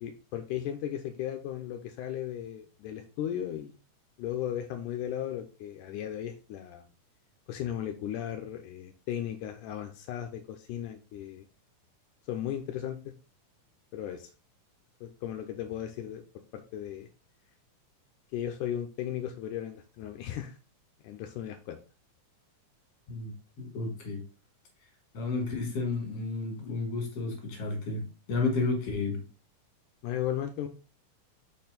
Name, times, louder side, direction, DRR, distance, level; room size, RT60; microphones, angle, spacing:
voice 1, 0.0-3.8 4.2-6.9 7.5-11.5 12.3-13.0 13.9-14.3 15.0-16.2 16.5-17.1 18.3-20.6 21.0-21.8 30.0-30.7, left 11 dB, 85° left, 5 dB, 2.1 m, -36 dB
voice 2, 23.1-24.2 25.1-29.2, left 3 dB, 50° left, 2 dB, 2.7 m, -32 dB
5.8 x 4.3 x 4.0 m, 0.34 s
omnidirectional pair, 3.7 m